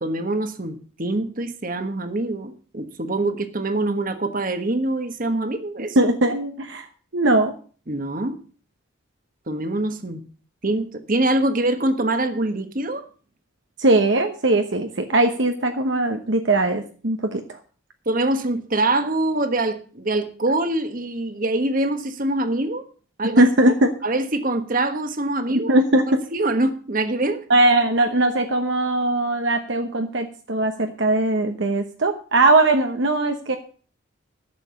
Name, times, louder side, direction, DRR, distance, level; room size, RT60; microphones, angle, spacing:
voice 1, 0.0-6.0 7.9-8.4 9.5-10.2 10.6-13.1 18.0-22.8 23.2-23.4 24.0-25.7 26.3-27.4, right 2 dB, 40° right, 8 dB, 1.3 m, -24 dB
voice 2, 6.0-6.9 7.1-7.5 13.8-17.6 23.4-23.9 25.7-26.2 27.5-33.6, right 2 dB, 60° right, 5 dB, 1.0 m, -20 dB
12.0 x 7.1 x 6.9 m, 0.40 s
head